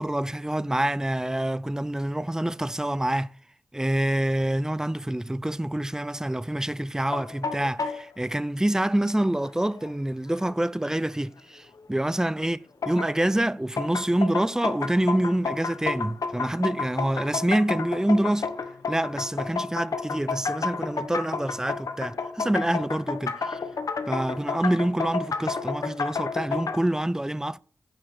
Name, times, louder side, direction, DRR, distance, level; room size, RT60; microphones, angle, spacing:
voice 1, 0.0-3.3 3.7-18.5 18.9-23.6 24.1-27.6, right 1 dB, 10° right, 0.5 m, -26 dB
sound 1, 7.1-8.0 9.2-9.3 9.8-9.9 10.5-10.6 12.8-13.3 13.8-26.8, left 4 dB, 75° left, 1.1 m, -31 dB
10.0 x 5.5 x 7.0 m
cardioid pair, 45°, 6 cm